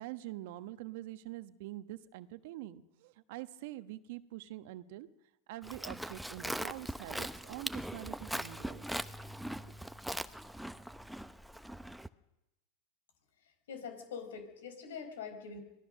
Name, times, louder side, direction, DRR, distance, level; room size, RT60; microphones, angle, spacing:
voice 1, 0.0-5.1 5.5-8.9 9.7-9.8, right 15 dB, 65° right, 12 dB, 1.2 m, -45 dB
Livestock farm animals working animals, 5.6-12.1, right 1 dB, ahead, 0.8 m, -41 dB
voice 2, 13.7-15.6, left 6 dB, 85° left, 8 dB, 4.8 m, -44 dB
25.5 x 18.0 x 6.5 m, 0.91 s
hypercardioid pair, 110°, 0 cm